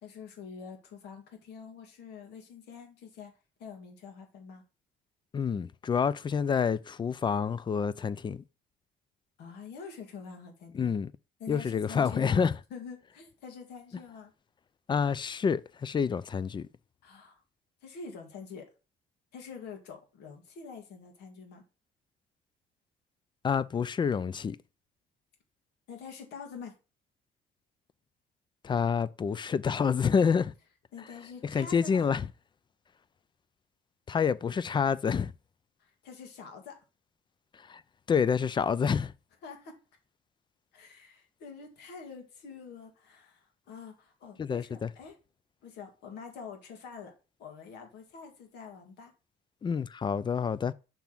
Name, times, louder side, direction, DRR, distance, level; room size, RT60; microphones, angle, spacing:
voice 1, 0.0-3.3 3.6-4.6 9.4-10.9 11.4-14.3 17.0-17.4 17.8-18.7 19.3-21.6 25.9-26.7 30.9-32.1 35.8-36.8 39.4-39.8 40.7-45.2 45.6-47.1 47.4-49.1, left 5 dB, 80° left, 2.0 m, -46 dB
voice 2, 5.3-8.4 10.7-11.1 11.5-12.5 14.9-16.7 23.4-24.6 28.6-30.5 31.5-32.2 34.1-35.3 37.7-37.8 38.1-39.1 44.4-44.9 49.6-50.7, left 6 dB, 25° left, 0.4 m, -28 dB
6.0 x 3.6 x 6.0 m
cardioid pair, 110°, 17 cm